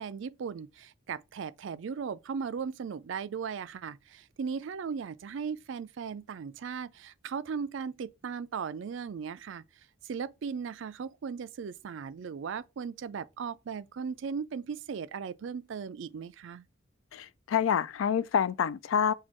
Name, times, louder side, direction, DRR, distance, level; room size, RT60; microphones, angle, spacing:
voice 1, 0.0-9.6 10.0-16.6, right 6 dB, 70° right, 0.4 m, -37 dB
voice 2, 17.1-19.1, left 7 dB, 80° left, 0.3 m, -27 dB
6.2 x 2.3 x 2.9 m
head